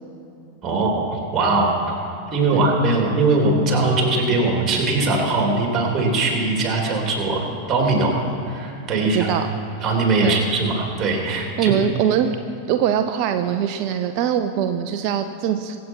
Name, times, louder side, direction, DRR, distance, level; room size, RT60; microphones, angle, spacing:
voice 1, 0.6-1.7 2.3-7.4 7.7-8.2 8.5-9.3 9.8-11.7, right 2 dB, 25° right, 0 dB, 3.5 m, -20 dB
voice 2, 9.1-9.5 10.2-10.4 11.6-12.3 12.7-15.8, right 9 dB, 45° right, 8 dB, 0.6 m, -22 dB
23.5 x 8.2 x 4.8 m, 2.7 s
figure-of-eight pair, 90°, 0 cm